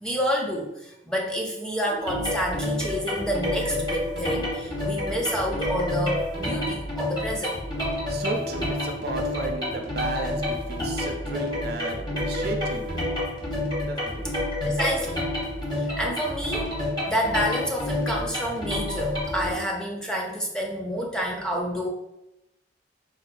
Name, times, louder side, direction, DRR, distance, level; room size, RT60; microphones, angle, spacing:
voice 1, 0.0-7.6 14.6-15.2 15.8-16.7 17.0-21.9, equal, 5° left, -1 dB, 0.4 m, -29 dB
sound 1, 1.8-19.6, left 1 dB, 65° left, 1.3 m, -40 dB
sound 2, 2.1-19.5, left 1 dB, 25° left, 0.8 m, -29 dB
voice 2, 8.1-12.9 13.8-14.3, right 3 dB, 60° right, 4 dB, 0.4 m, -34 dB
4.1 x 2.1 x 2.4 m, 0.86 s
head